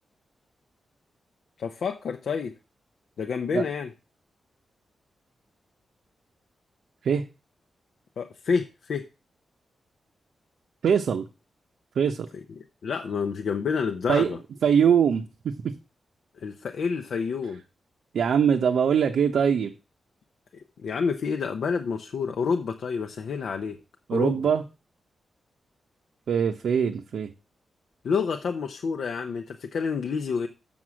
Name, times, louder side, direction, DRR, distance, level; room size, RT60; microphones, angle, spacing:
voice 1, 1.6-2.5 3.2-3.9 8.2-9.0 12.6-14.4 16.4-17.6 20.8-23.8 24.1-24.4 28.0-30.5, left 5 dB, 65° left, 5 dB, 0.6 m, -28 dB
voice 2, 10.8-11.2 12.0-12.3 14.1-14.3 14.6-15.5 18.1-19.7 24.1-24.6 26.3-27.3, right 7 dB, 80° right, 4 dB, 0.7 m, -22 dB
7.1 x 6.1 x 6.2 m, 0.31 s
wide cardioid pair, 170°, 0 cm